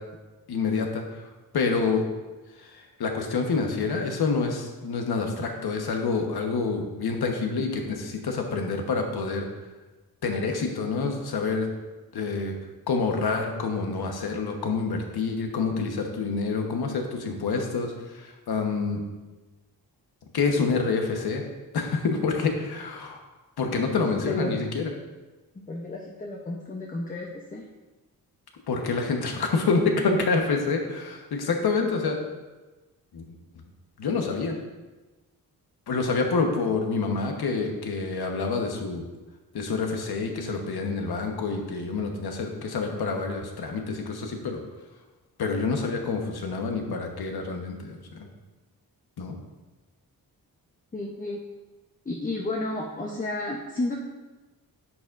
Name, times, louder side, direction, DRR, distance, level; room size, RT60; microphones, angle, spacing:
voice 1, 0.5-1.2 1.5-2.0 2.6-9.4 10.2-11.7 12.1-12.5 12.9-19.0 20.3-21.4 21.7-23.2 23.6-24.9 28.7-32.2 33.1-33.2 34.0-34.6 35.9-39.0 39.5-44.6 45.4-48.3 49.2-49.4, left 4 dB, 80° left, 3 dB, 1.2 m, -27 dB
voice 2, 23.9-24.5 25.7-27.6 50.9-51.4 52.1-54.0, left 2 dB, 20° left, -1 dB, 0.8 m, -32 dB
10.0 x 7.2 x 2.6 m, 1.2 s
wide cardioid pair, 130°, 37 cm